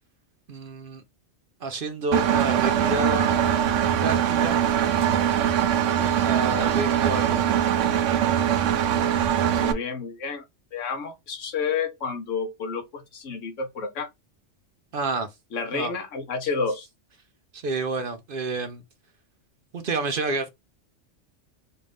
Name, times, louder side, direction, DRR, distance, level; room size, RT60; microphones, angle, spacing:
voice 1, 0.5-1.0 1.6-3.3 4.0-4.6 6.2-7.5 14.9-15.3 15.7-15.9 17.5-18.8 19.7-20.5, right 3 dB, 55° right, 0.7 m, -29 dB
Engine, 2.1-9.7, right 9 dB, 85° right, 0.9 m, -22 dB
voice 2, 9.6-10.4 10.7-14.1 15.5-16.9, left 5 dB, 85° left, 1.3 m, -30 dB
4.2 x 2.6 x 3.4 m
omnidirectional pair, 1.2 m